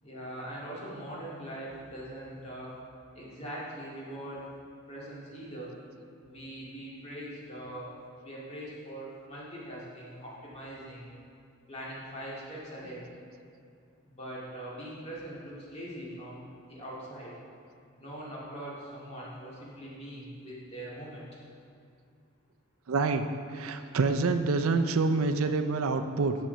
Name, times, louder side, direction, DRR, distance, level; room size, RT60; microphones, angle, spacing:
voice 1, 0.0-2.7 3.1-4.4 4.9-5.7 6.2-7.9 8.2-11.1 11.7-13.0 14.1-17.3 18.0-21.2, right 1 dB, 30° left, -7 dB, 2.1 m, -42 dB
voice 2, 22.9-23.2 23.5-26.4, right 3 dB, 80° right, 8 dB, 0.5 m, -27 dB
7.4 x 6.3 x 5.5 m, 2.4 s
head